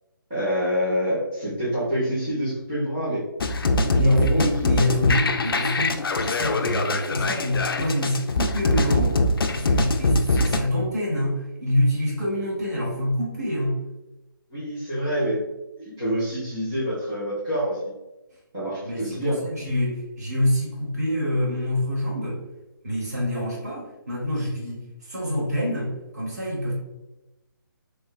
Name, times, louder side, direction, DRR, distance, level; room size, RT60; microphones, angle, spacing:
voice 1, 0.3-3.2 3.8-4.5 14.5-15.4 15.8-17.9 18.5-19.4, equal, 10° right, -13 dB, 0.5 m, -26 dB
sound 1, 3.4-10.6, left 2 dB, 85° left, 0.4 m, -23 dB
voice 2, 3.9-13.7 18.8-22.4 22.8-26.7, left 1 dB, 45° right, -5 dB, 1.3 m, -26 dB
3.1 x 2.1 x 3.8 m, 0.98 s
hypercardioid pair, 180°, 12 cm